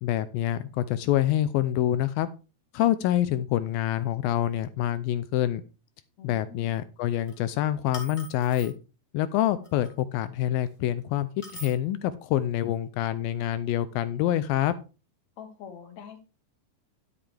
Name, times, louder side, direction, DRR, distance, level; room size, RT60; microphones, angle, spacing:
voice 1, 0.0-2.3 2.7-5.6 6.2-8.7 9.1-14.7, left 12 dB, 80° left, 14 dB, 2.2 m, -26 dB
voice 2, 6.2-6.7 15.4-16.2, left 7 dB, 55° left, 7 dB, 2.4 m, -44 dB
sound 1, 7.1-7.3 7.9-8.7 9.6-9.9 11.4-11.8, left 1 dB, 15° left, 1.6 m, -42 dB
11.0 x 8.8 x 3.4 m, 0.32 s
omnidirectional pair, 4.5 m